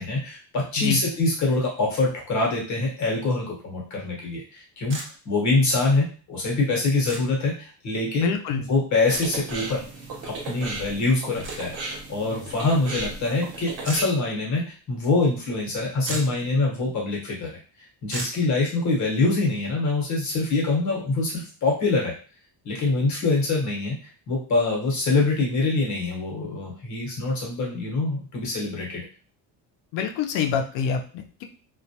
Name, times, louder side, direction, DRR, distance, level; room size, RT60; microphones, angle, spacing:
voice 1, 0.0-5.0 5.2-8.3 8.7-9.8 10.2-17.5 18.0-22.1 22.6-23.9 24.3-29.0, left 3 dB, 40° left, -3 dB, 1.0 m, -24 dB
sound 1, 4.9-5.1 7.0-7.2 9.1-9.3 11.4-11.6 13.8-14.0 15.7-15.8 16.0-16.4 18.1-18.4, right 2 dB, 30° right, 0.6 m, -33 dB
voice 2, 8.2-8.6 29.9-31.4, left 6 dB, 85° left, 5 dB, 0.6 m, -26 dB
sound 2, 9.0-14.0, right 3 dB, 65° right, 1.0 m, -36 dB
2.2 x 2.1 x 2.7 m, 0.38 s
cardioid pair, 150°, 42 cm